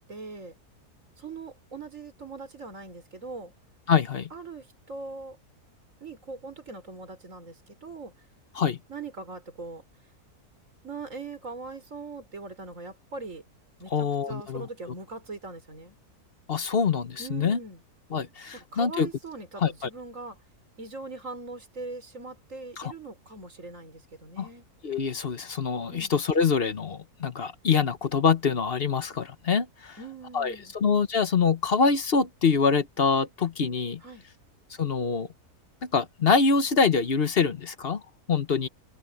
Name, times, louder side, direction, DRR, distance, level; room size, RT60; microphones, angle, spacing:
voice 1, 0.1-0.6 1.2-3.5 4.3-5.4 6.0-8.1 8.9-9.8 10.8-13.4 13.8-16.0 17.2-17.8 18.5-20.4 20.8-24.7 25.9-26.1 30.0-30.7 34.0-34.3, right 3 dB, 55° right, 5.2 m, -41 dB
voice 2, 3.9-4.3 8.5-8.8 13.9-14.7 16.5-17.6 18.1-19.1 19.6-19.7 22.8-22.9 24.4-24.5 24.8-30.0 30.3-34.0 34.8-35.3 35.8-38.0 38.3-38.7, left 5 dB, 45° left, 1.1 m, -25 dB
omnidirectional pair, 1.6 m